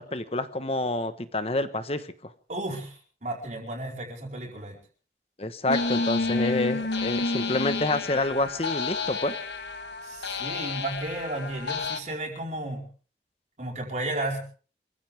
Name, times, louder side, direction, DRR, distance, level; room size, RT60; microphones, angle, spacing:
voice 1, 0.0-2.3 5.4-9.4, left 2 dB, 35° left, 11 dB, 1.2 m, -28 dB
voice 2, 2.5-4.8 6.2-6.7 10.0-12.8 13.6-14.4, right 2 dB, 45° right, -1 dB, 4.7 m, -33 dB
sound 1, 5.7-12.0, left 3 dB, 85° left, 1.3 m, -30 dB
26.0 x 15.5 x 3.5 m, 0.40 s
head